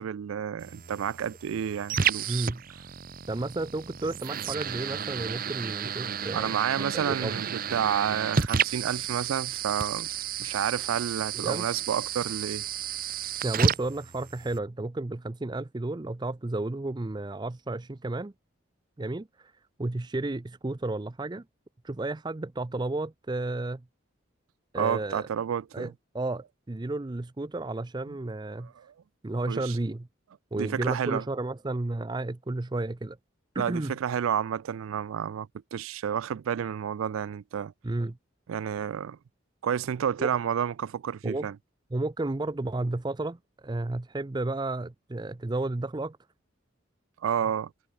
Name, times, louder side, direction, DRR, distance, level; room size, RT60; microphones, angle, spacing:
voice 1, 0.0-2.5 6.3-10.1 10.4-12.7 24.8-25.9 28.6-28.9 29.5-29.8 30.6-31.2 33.6-37.7 38.5-39.2 39.6-41.5 47.2-47.7, right 8 dB, 90° right, 0.4 m, -30 dB
sound 1, 0.6-14.6, right 7 dB, 45° right, 0.8 m, -32 dB
voice 2, 2.3-2.6 3.3-7.4 11.3-11.7 13.4-18.3 19.0-19.5 19.8-21.4 21.8-23.8 24.7-25.3 25.7-28.7 29.2-30.1 30.5-33.2 33.5-34.0 37.8-38.2 40.2-40.3 41.2-41.5 41.9-46.2, right 2 dB, 20° right, 0.5 m, -32 dB
head